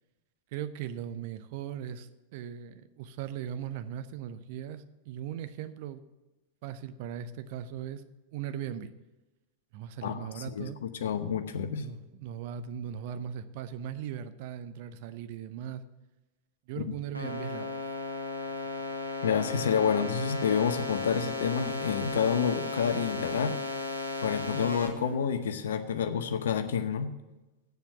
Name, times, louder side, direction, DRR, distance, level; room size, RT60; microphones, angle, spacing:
voice 1, 0.5-6.0 6.6-8.0 8.3-8.9 9.7-10.8 11.8-15.8 16.7-17.8, right 9 dB, 50° right, 12 dB, 0.6 m, -39 dB
voice 2, 10.0-11.9 19.2-23.6 24.2-27.1, left 7 dB, 60° left, 10 dB, 0.8 m, -29 dB
sound 1, 17.1-24.9, left 2 dB, 80° right, 1.1 m, -35 dB
8.1 x 7.2 x 6.9 m, 1.1 s
figure-of-eight pair, 90°, 0 cm